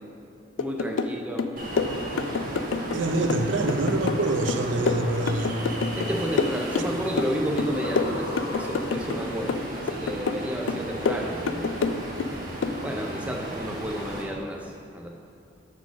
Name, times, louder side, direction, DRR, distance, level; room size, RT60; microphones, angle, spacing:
sound 1, 0.6-1.1 1.4-3.0 3.3-6.1 6.4-7.3 7.6-9.2 9.5-10.4 10.7-12.3 12.6-12.8, left 4 dB, 80° left, 0.3 m, -27 dB
voice 1, 0.6-1.5 5.9-11.7 12.8-15.1, equal, 5° right, 0 dB, 0.5 m, -31 dB
Ocean, 1.6-14.2, right 1 dB, 45° right, 1.3 m, -35 dB
voice 2, 2.9-5.5, right 2 dB, 70° right, 5 dB, 0.5 m, -25 dB
sound 2, 4.5-9.1, left 1 dB, 45° left, 1.0 m, -39 dB
7.5 x 3.8 x 6.1 m, 2.7 s
head